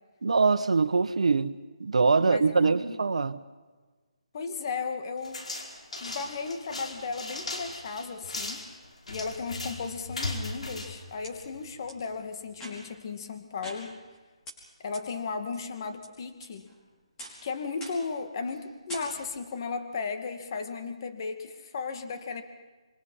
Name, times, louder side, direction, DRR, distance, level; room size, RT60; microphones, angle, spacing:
voice 1, 0.2-3.4, right 4 dB, 75° right, 1.3 m, -24 dB
voice 2, 2.2-3.0 4.3-5.5 6.0-8.7 9.1-14.0 14.8-16.7 17.4-22.4, left 4 dB, 40° left, 2.2 m, -35 dB
sound 1, 5.2-11.8, left 2 dB, 90° left, 4.9 m, -38 dB
sound 2, 10.8-11.3 11.9-12.0 12.5-13.0 13.6-14.2 14.5-14.6 14.9-15.0 15.5-16.1 16.4-16.8 17.2-17.5 17.8-18.1 18.4-18.6 18.9-19.5, right 1 dB, 15° left, 5.4 m, -44 dB
27.0 x 24.5 x 5.7 m
hypercardioid pair, 165°, 3 cm